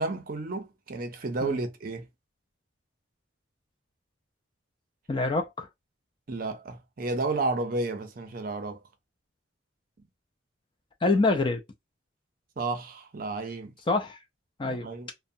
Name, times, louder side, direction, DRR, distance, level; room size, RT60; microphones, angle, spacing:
voice 1, 0.0-2.1 6.3-8.8 12.6-13.7 14.6-15.1, right 3 dB, 45° right, 0.5 m, -32 dB
voice 2, 5.1-5.7 11.0-11.6 13.9-14.2 14.6-15.1, left 3 dB, 25° left, 0.3 m, -26 dB
2.6 x 2.0 x 2.6 m
head